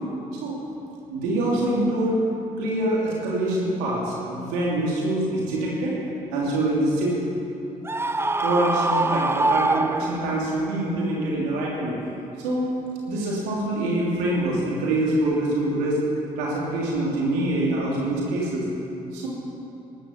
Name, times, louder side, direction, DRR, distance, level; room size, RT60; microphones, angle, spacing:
voice 1, 1.1-2.2 2.6-6.0 6.3-7.2 8.4-11.9 12.4-12.6 13.1-16.0 16.3-18.6 19.1-19.3, right 1 dB, 90° right, -5 dB, 3.0 m, -25 dB
Screaming, 7.9-10.5, right 2 dB, 15° right, 0.7 m, -24 dB
12.5 x 11.5 x 7.1 m, 3.0 s
hypercardioid pair, 50°, 17 cm